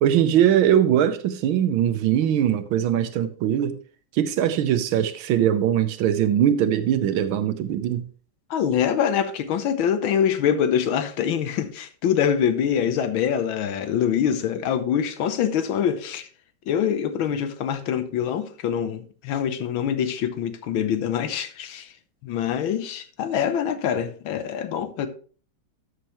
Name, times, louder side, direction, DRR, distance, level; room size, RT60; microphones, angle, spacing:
voice 1, 0.0-3.8 4.1-8.1, right 10 dB, 75° right, 1.5 m, -21 dB
voice 2, 8.5-16.3 16.7-21.9 22.2-25.1, left 8 dB, 75° left, 1.6 m, -24 dB
12.5 x 6.6 x 3.0 m
omnidirectional pair, 2.3 m